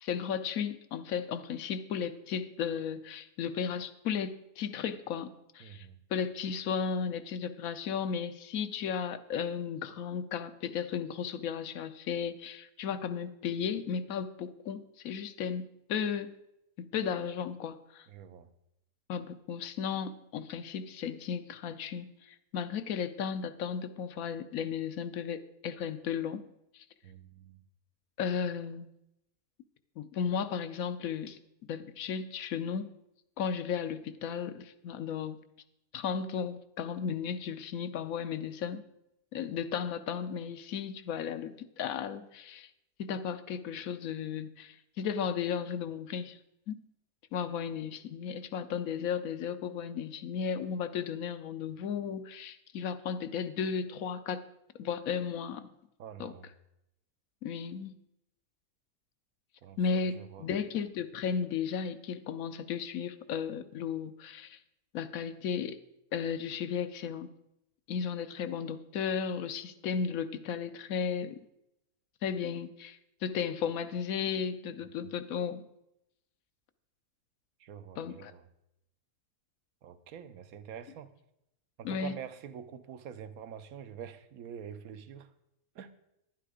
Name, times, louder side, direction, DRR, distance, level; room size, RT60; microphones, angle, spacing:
voice 1, 0.0-16.3 16.8-18.1 19.1-26.4 26.7-26.8 28.2-28.9 30.0-31.4 31.7-32.9 33.4-35.4 35.9-38.8 39.3-42.7 43.0-46.4 46.7-46.8 47.3-54.4 54.8-55.7 56.2-56.3 57.4-58.0 59.8-64.6 64.9-65.8 66.1-67.3 67.9-71.4 72.2-75.6 78.0-78.3 81.8-82.2, left 7 dB, 75° left, 12 dB, 1.1 m, -35 dB
voice 2, 5.6-6.0 18.1-18.5 27.0-27.6 56.0-56.5 59.6-59.8 60.1-60.5 77.6-78.4 79.8-81.1 81.8-85.3 85.7-85.9, right 8 dB, 75° right, 12 dB, 1.2 m, -46 dB
11.0 x 9.3 x 4.9 m, 0.85 s
omnidirectional pair, 1.5 m